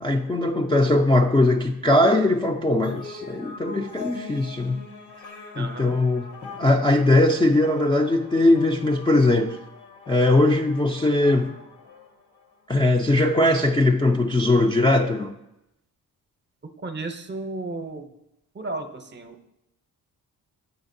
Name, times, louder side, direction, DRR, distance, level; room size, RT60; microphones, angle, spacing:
voice 1, 0.0-4.8 5.6-9.6 10.1-11.5 12.7-15.3, left 2 dB, 15° left, 0.3 m, -20 dB
sound 1, 2.8-12.6, left 4 dB, 80° left, 1.0 m, -42 dB
voice 2, 5.5-6.0 16.8-18.1 18.5-19.5, right 2 dB, 30° right, 0.6 m, -34 dB
7.8 x 5.1 x 2.6 m
cardioid pair, 70°, 38 cm